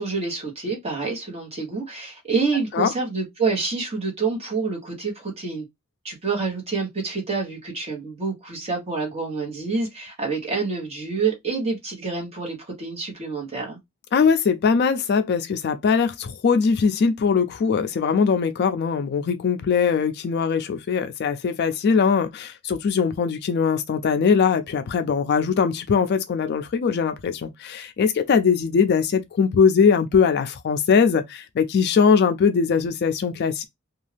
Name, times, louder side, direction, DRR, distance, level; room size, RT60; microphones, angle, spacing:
voice 1, 0.0-5.6 6.0-13.8, right 4 dB, 30° right, 1.1 m, -27 dB
voice 2, 14.1-33.6, left 6 dB, 50° left, 0.3 m, -21 dB
2.6 x 2.3 x 3.3 m
head